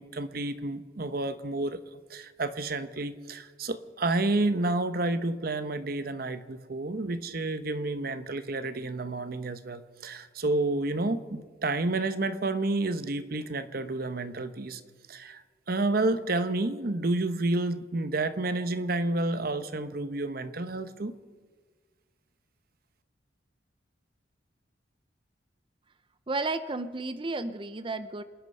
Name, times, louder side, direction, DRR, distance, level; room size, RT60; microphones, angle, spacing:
voice 1, 0.0-1.8 2.1-14.8 15.1-15.4 15.7-21.1, right 2 dB, 50° right, 12 dB, 0.9 m, -30 dB
voice 2, 26.3-28.2, right 3 dB, 25° right, 12 dB, 0.6 m, -32 dB
27.5 x 9.6 x 5.4 m, 1.5 s
head